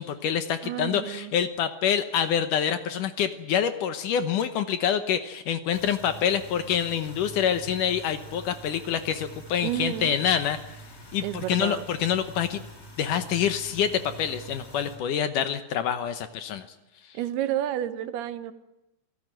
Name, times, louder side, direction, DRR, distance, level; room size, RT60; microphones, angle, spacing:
voice 1, 0.0-10.8 11.1-12.6 13.0-16.7, left 8 dB, 70° left, 10 dB, 2.2 m, -26 dB
voice 2, 0.6-1.3 9.6-10.2 11.2-11.8 17.1-18.5, right 12 dB, 80° right, 12 dB, 3.0 m, -30 dB
sound 1, 5.7-15.0, right 2 dB, 15° left, 5.1 m, -45 dB
27.0 x 17.0 x 9.1 m, 0.94 s
omnidirectional pair, 4.6 m